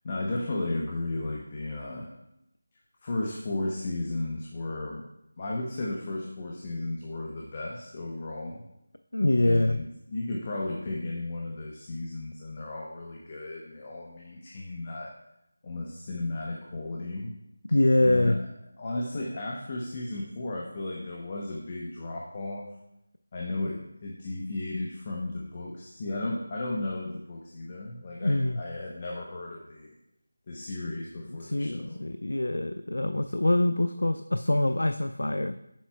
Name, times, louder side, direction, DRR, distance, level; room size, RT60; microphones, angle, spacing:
voice 1, 0.0-2.1 3.0-5.0 5.4-8.6 9.4-15.1 15.6-17.3 18.0-18.3 18.8-22.7 23.3-29.9 30.5-32.0, left 2 dB, 30° left, -2 dB, 0.8 m, -34 dB
voice 2, 9.1-9.8 17.7-18.4 28.2-28.6 31.3-35.6, left 1 dB, 90° left, 8 dB, 0.4 m, -25 dB
8.3 x 7.2 x 2.3 m, 0.83 s
figure-of-eight pair, 170°, 0 cm